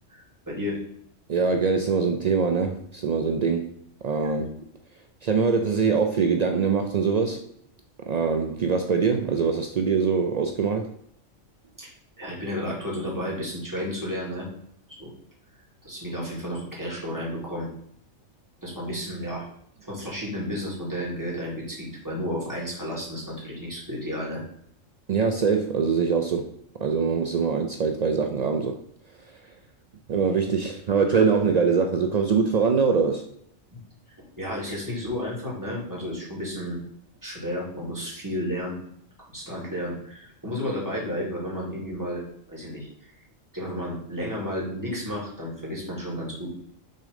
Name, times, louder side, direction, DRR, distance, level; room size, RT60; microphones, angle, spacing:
voice 1, 0.1-0.8 11.8-11.9 12.2-14.5 15.0-15.1 15.8-17.7 18.6-19.5 19.9-24.4 34.4-36.8 37.2-38.8 39.2-42.2 42.5-43.1 43.5-46.5, equal, 15° right, -5 dB, 2.3 m, -32 dB
voice 2, 1.3-3.7 4.0-4.6 5.2-7.5 8.1-10.9 25.1-26.5 26.8-28.8 30.1-33.2, right 5 dB, 70° right, 5 dB, 0.3 m, -23 dB
6.6 x 3.7 x 5.1 m, 0.69 s
omnidirectional pair, 1.4 m